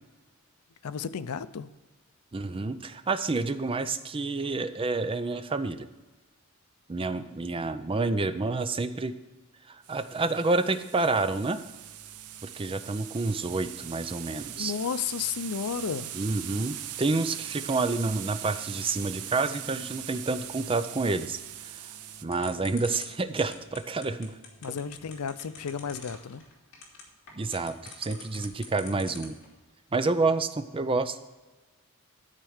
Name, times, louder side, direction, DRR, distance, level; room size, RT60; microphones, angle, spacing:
voice 1, 0.8-1.7 14.6-16.1 24.6-26.4, left 6 dB, 85° left, 14 dB, 0.5 m, -33 dB
voice 2, 2.3-5.9 6.9-9.2 9.7-11.6 12.4-14.7 16.1-21.9 22.2-24.4 27.3-29.4 29.9-31.2, right 3 dB, 25° right, 10 dB, 0.5 m, -29 dB
sound 1, 9.8-22.2, right 12 dB, 80° right, 0.5 m, -41 dB
sound 2, 11.0-26.2, equal, 20° left, 3.9 m, -58 dB
sound 3, 22.3-29.5, left 5 dB, 60° left, 2.5 m, -44 dB
12.5 x 4.5 x 6.4 m, 1.2 s
head